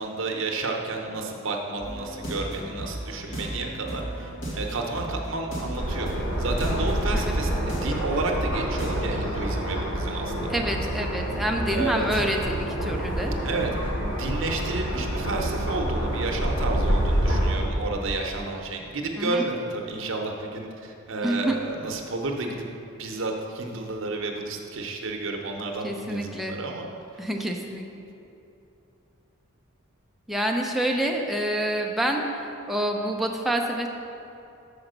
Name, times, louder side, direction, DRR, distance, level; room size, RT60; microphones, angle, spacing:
voice 1, 0.0-6.1 6.4-10.6 11.7-12.2 13.4-13.7 14.1-22.6 22.9-26.8 27.1-27.2, right 3 dB, 65° right, 1 dB, 0.8 m, -31 dB
sound 1, 1.8-9.6, right 1 dB, 60° left, 1.6 m, -34 dB
sound 2, 5.8-17.5, equal, 75° left, 2.0 m, -27 dB
voice 2, 10.5-12.6 12.8-13.4 19.2-19.4 21.2-21.5 25.8-26.6 27.2-27.8 30.3-32.2 32.7-33.9, right 1 dB, ahead, 1 dB, 0.5 m, -27 dB
6.9 x 4.9 x 6.6 m, 2.8 s
head